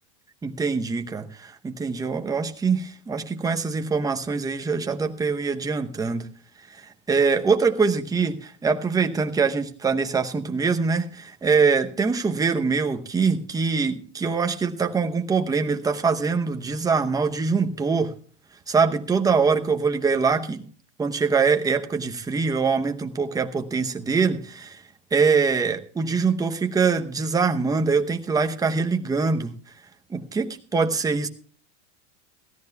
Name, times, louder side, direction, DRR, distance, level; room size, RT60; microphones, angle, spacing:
voice 1, 0.4-6.3 6.7-18.1 18.7-20.6 21.0-24.8 25.1-29.5 30.1-31.3, right 5 dB, 10° right, 5 dB, 0.8 m, -23 dB
21.5 x 14.0 x 2.3 m, 0.43 s
supercardioid pair, 140°, 37 cm